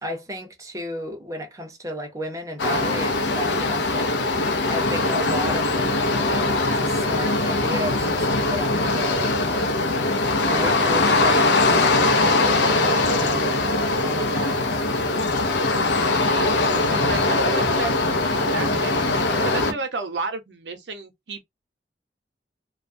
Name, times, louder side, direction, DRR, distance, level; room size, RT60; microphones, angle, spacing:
voice 1, 0.0-9.4 10.4-13.7 14.0-14.8 16.6-17.2 19.7-19.8, equal, 20° right, 0.6 m, -34 dB
sound 1, 2.6-19.7, left 2 dB, 80° left, 0.5 m, -21 dB
voice 2, 16.2-16.5 16.9-19.1 19.4-21.4, right 3 dB, 80° right, 0.7 m, -32 dB
2.3 x 2.1 x 2.5 m
head